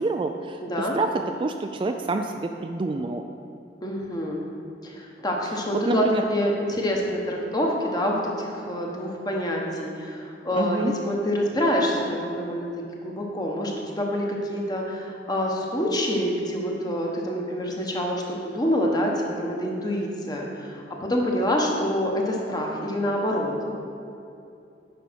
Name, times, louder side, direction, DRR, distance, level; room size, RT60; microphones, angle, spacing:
voice 1, 0.0-3.2 5.7-6.3 10.5-10.9, right 3 dB, 30° right, 5 dB, 0.3 m, -27 dB
voice 2, 3.8-4.4 4.8-6.0 6.3-12.7 13.0-23.5, equal, 20° left, -1 dB, 1.3 m, -26 dB
9.9 x 5.5 x 6.3 m, 2.7 s
head